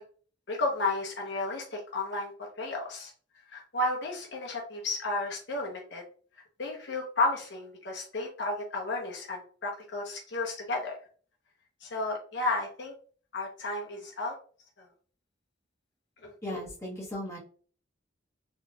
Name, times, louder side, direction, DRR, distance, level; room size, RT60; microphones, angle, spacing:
voice 1, 0.5-2.3 2.6-3.1 3.5-6.0 6.6-10.9 11.8-12.9 13.3-14.3 16.2-16.6, left 2 dB, 65° left, -1 dB, 0.8 m, -32 dB
voice 2, 16.4-17.4, left 1 dB, 15° left, -6 dB, 1.3 m, -37 dB
3.9 x 3.1 x 2.3 m, 0.42 s
head